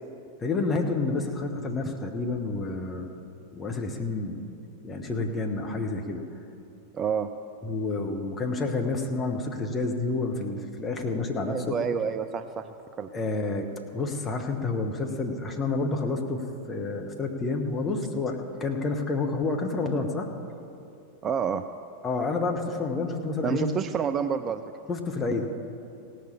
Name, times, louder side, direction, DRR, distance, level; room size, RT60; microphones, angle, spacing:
voice 1, 0.4-3.1 3.5-4.5 4.8-6.3 7.6-11.8 13.1-13.7 13.9-20.3 22.0-23.7 24.9-25.5, left 3 dB, 20° left, 2 dB, 1.3 m, -29 dB
voice 2, 6.9-7.3 11.5-12.7 13.0-13.1 21.2-21.6 23.4-24.6, right 7 dB, 25° right, 10 dB, 0.4 m, -28 dB
17.0 x 6.6 x 6.9 m, 2.7 s
figure-of-eight pair, 90°, 0 cm